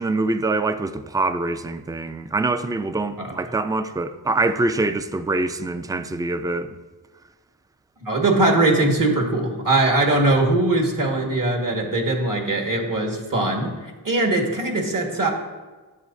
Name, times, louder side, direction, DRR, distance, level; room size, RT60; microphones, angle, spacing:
voice 1, 0.0-6.8, right 2 dB, 10° right, 0.4 m, -24 dB
voice 2, 8.0-13.7 14.0-15.3, right 2 dB, 50° right, 1.8 m, -21 dB
11.0 x 8.2 x 2.7 m
cardioid pair, 55°, 42 cm